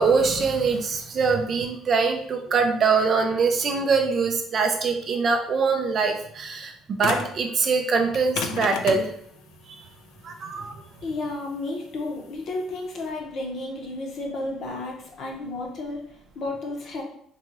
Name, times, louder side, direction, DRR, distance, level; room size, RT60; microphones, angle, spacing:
voice 1, 0.0-9.1 10.2-10.7, right 4 dB, 35° right, 5 dB, 0.3 m, -23 dB
sound 1, 7.0-7.4 8.1-13.1, left 6 dB, 85° left, 0.3 m, -33 dB
voice 2, 11.0-17.0, left 2 dB, 45° left, 1 dB, 0.8 m, -32 dB
3.9 x 2.3 x 2.9 m, 0.65 s
cardioid pair, 170°, 0 cm